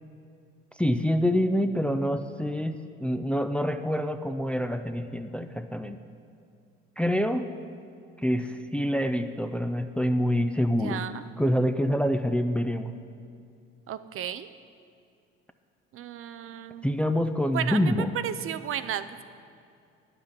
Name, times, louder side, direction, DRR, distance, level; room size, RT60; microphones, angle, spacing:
voice 1, 0.8-6.0 7.0-7.5 8.2-11.1 11.4-12.9 16.8-18.1, equal, 5° left, 8 dB, 0.4 m, -26 dB
voice 2, 10.8-11.3 13.9-14.5 15.9-16.9 17.5-19.2, right 10 dB, 45° right, 12 dB, 0.5 m, -34 dB
10.0 x 5.9 x 6.6 m, 2.4 s
hypercardioid pair, 70°, 29 cm